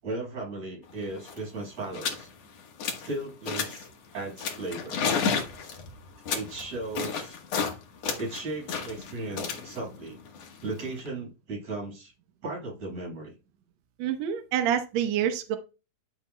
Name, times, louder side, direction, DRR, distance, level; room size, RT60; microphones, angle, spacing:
voice 1, 0.0-2.3 3.0-5.0 6.3-7.4 8.2-10.2 10.6-12.1 12.4-13.3, right 2 dB, 45° right, -5 dB, 7.2 m, -36 dB
sound 1, 0.9-1.0 1.2-1.5 1.9-2.3 2.6-3.1 3.5-3.9 4.4-7.8 8.0-11.1, left 6 dB, 55° left, 2.2 m, -32 dB
voice 2, 14.0-15.6, right 9 dB, 75° right, 7 dB, 1.6 m, -27 dB
12.0 x 7.2 x 2.2 m, 0.29 s
omnidirectional pair, 4.3 m